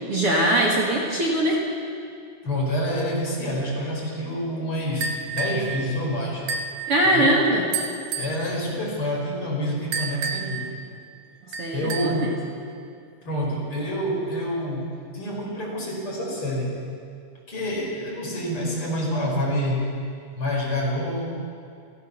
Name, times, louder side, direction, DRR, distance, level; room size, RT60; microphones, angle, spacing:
voice 1, 0.1-1.6 6.9-7.6 11.6-12.3, right 1 dB, 45° right, -2 dB, 2.7 m, -21 dB
voice 2, 2.4-6.5 7.0-7.3 8.1-10.7 11.7-12.4 13.2-16.7 17.5-19.9 20.4-21.3, equal, 35° left, -2 dB, 5.6 m, -27 dB
sound 1, 5.0-5.7 6.5-6.8 7.7-8.4 9.9-10.6 11.5-12.2, right 4 dB, 65° right, 2.9 m, -30 dB
29.0 x 16.0 x 7.0 m, 2.4 s
omnidirectional pair, 4.0 m